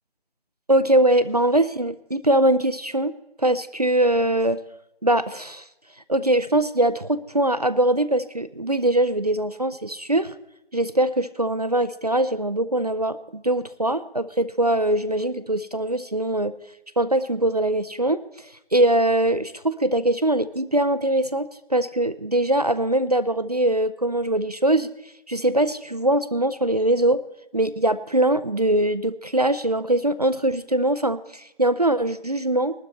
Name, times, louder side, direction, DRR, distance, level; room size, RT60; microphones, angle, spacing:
voice 1, 0.7-3.1 3.4-4.6 5.0-5.6 6.1-10.3 10.7-13.2 13.4-16.6 17.0-18.2 18.7-24.9 25.3-27.2 27.5-32.7, right 1 dB, 40° right, 13 dB, 0.4 m, -22 dB
20.0 x 12.5 x 4.3 m, 0.91 s
figure-of-eight pair, 165°, 31 cm